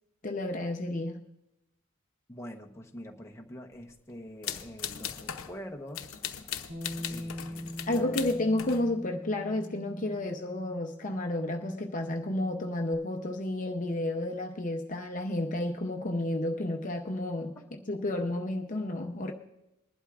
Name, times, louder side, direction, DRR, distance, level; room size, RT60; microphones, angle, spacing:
voice 1, 0.2-1.2 7.9-17.6 17.9-19.3, left 1 dB, 40° left, 3 dB, 0.7 m, -31 dB
voice 2, 2.3-6.2 7.1-8.3 17.6-17.7, equal, 15° left, 0 dB, 1.0 m, -45 dB
sound 1, 4.4-5.6 5.9-8.9, left 9 dB, 80° left, 0.8 m, -38 dB
Bass guitar, 6.7-12.9, left 1 dB, 90° right, 3.8 m, -43 dB
21.0 x 11.5 x 2.4 m, 0.91 s
head